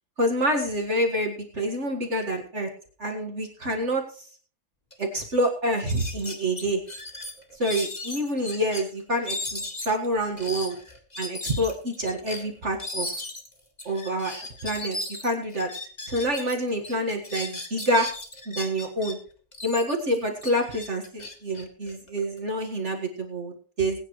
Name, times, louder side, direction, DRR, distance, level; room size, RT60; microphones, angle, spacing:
voice 1, 0.2-2.7 3.0-4.3 5.0-6.8 7.5-10.8 11.2-13.1 13.9-14.3 14.6-15.0 15.2-15.7 16.1-18.1 18.5-19.2 19.6-24.0, equal, 40° right, 2 dB, 1.9 m, -27 dB
sound 1, 4.9-5.0 5.3-5.5 5.9-8.8 9.2-16.5 16.8-19.1 19.5-22.4, left 2 dB, 25° left, 1.9 m, -36 dB
21.5 x 9.3 x 3.1 m, 0.42 s
omnidirectional pair, 1.9 m